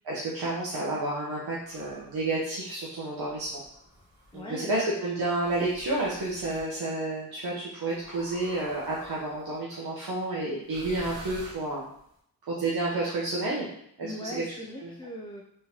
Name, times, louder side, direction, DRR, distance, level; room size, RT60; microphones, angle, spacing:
voice 1, 0.0-3.6 4.3-11.8 12.5-13.7 14.0-14.4 14.8-14.9, right 2 dB, 70° right, -5 dB, 0.9 m, -30 dB
sound 1, 1.6-2.3 3.2-4.4 5.4-6.7 8.0-9.5 10.6-12.1, equal, 50° right, 1.5 m, -48 dB
voice 2, 4.3-4.7 14.0-15.4, left 1 dB, 15° left, 0 dB, 0.3 m, -39 dB
3.6 x 3.0 x 2.8 m, 0.72 s
cardioid pair, 70°, 39 cm